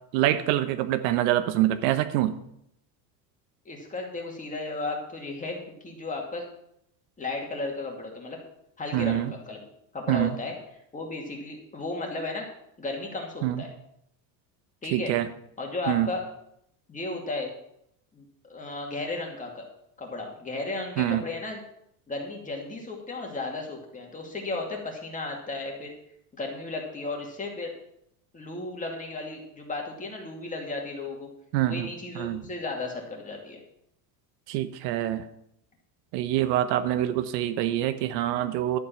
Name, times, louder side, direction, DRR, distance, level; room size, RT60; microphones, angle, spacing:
voice 1, 0.1-2.4 8.9-9.3 10.1-10.4 13.4-13.6 14.9-15.3 15.9-16.1 21.0-21.2 31.5-31.9 32.1-32.4 34.5-35.2 36.1-38.8, right 13 dB, 75° right, 11 dB, 1.1 m, -25 dB
voice 2, 3.6-6.5 7.2-8.4 8.8-9.6 9.9-10.6 10.9-12.5 12.8-13.7 14.8-15.1 15.6-16.2 16.9-17.5 18.1-19.6 20.0-21.6 22.1-25.9 26.3-27.7 28.3-31.3 31.7-33.6, left 3 dB, 15° left, 1 dB, 2.4 m, -34 dB
11.5 x 8.0 x 5.8 m, 0.76 s
cardioid pair, 150°, 49 cm